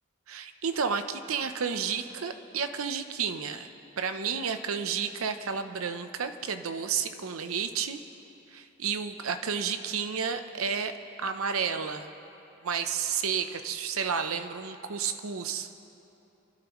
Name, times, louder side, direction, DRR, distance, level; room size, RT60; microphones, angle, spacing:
voice 1, 0.3-3.7 4.0-8.0 8.5-12.1 12.6-15.7, right 6 dB, 85° right, 8 dB, 0.8 m, -31 dB
28.0 x 12.0 x 3.1 m, 3.0 s
head